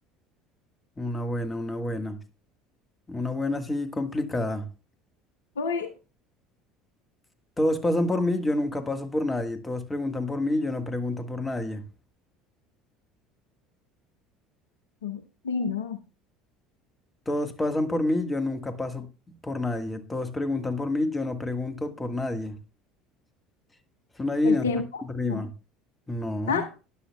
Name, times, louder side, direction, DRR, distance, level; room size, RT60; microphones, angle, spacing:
voice 1, 1.0-2.2 3.1-4.7 7.6-11.8 17.2-22.6 24.2-24.7 25.0-25.5 26.1-26.6, left 2 dB, 15° left, 1.6 m, -28 dB
voice 2, 5.6-5.9 15.0-16.0 24.4-24.9 25.3-25.4 26.5-26.7, left 5 dB, 75° left, 0.8 m, -29 dB
13.0 x 10.0 x 2.3 m
figure-of-eight pair, 65°, 0 cm